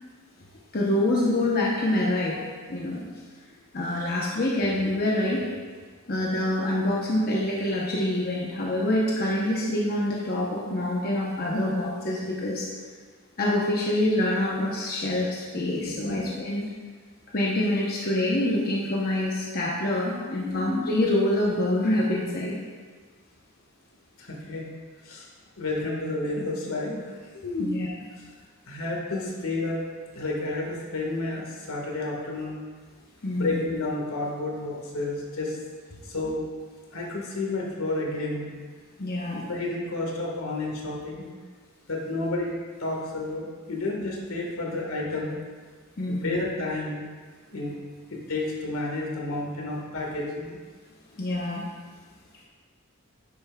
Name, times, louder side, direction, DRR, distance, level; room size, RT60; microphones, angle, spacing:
voice 1, 0.7-2.4 2.7-3.1 3.7-5.4 6.1-12.7 13.4-16.6 17.3-22.5 27.6-27.9 33.2-33.6 39.0-39.4 46.0-46.4 51.2-51.6, left 1 dB, 45° left, -4 dB, 0.9 m, -26 dB
voice 2, 15.8-16.3 20.4-20.9 24.2-24.7 25.0-25.3 25.6-27.7 28.7-29.8 30.1-32.6 33.3-35.6 36.0-36.4 36.9-38.5 39.5-41.3 41.9-45.4 46.1-47.1 47.5-47.7 48.1-50.6, left 2 dB, 80° left, -2 dB, 1.8 m, -31 dB
10.0 x 8.4 x 2.4 m, 1.5 s
head